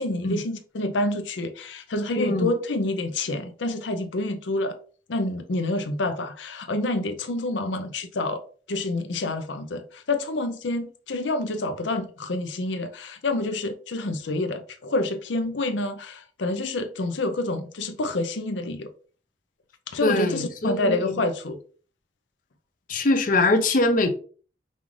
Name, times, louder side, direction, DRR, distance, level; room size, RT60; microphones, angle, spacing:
voice 1, 0.0-4.8 5.1-8.4 8.7-18.9 19.9-21.6, left 2 dB, 85° left, 0.6 m, -28 dB
voice 2, 2.2-2.5 20.0-21.2 22.9-24.1, left 2 dB, 45° left, 0.6 m, -23 dB
5.2 x 2.5 x 3.2 m
head